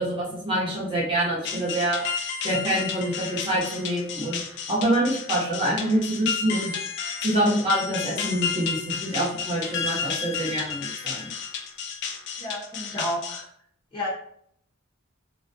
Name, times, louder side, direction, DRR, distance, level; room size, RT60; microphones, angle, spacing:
voice 1, 0.0-2.0 2.4-4.4 4.7-6.7 7.2-11.3, right 1 dB, 25° right, -6 dB, 0.9 m, -26 dB
sound 1, 1.4-13.4, left 6 dB, 60° left, 0.3 m, -32 dB
voice 2, 12.4-13.5 13.9-14.1, left 1 dB, 25° left, -6 dB, 0.7 m, -31 dB
2.3 x 2.2 x 2.6 m, 0.68 s
head